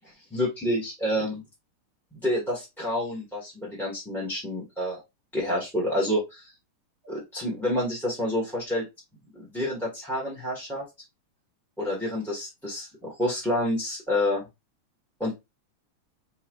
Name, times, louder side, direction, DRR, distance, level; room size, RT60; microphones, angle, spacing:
voice 1, 0.3-1.4 2.1-5.0 5.3-6.5 7.0-8.8 9.3-10.8 11.8-14.4 15.2-15.3, left 1 dB, ahead, -4 dB, 1.4 m, -28 dB
4.8 x 4.2 x 2.5 m, 0.22 s
omnidirectional pair, 2.3 m